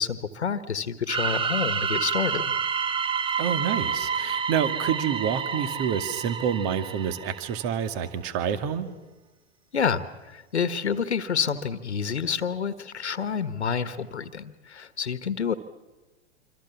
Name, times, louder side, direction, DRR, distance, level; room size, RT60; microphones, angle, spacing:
voice 1, 0.0-2.5 9.7-15.5, left 6 dB, 85° left, 13 dB, 1.5 m, -28 dB
sound 1, 1.1-7.7, right 6 dB, 15° right, 0.9 m, -29 dB
voice 2, 3.4-8.9, right 8 dB, 45° right, 11 dB, 2.2 m, -28 dB
26.5 x 25.0 x 7.2 m, 1.1 s
hypercardioid pair, 105°, 33 cm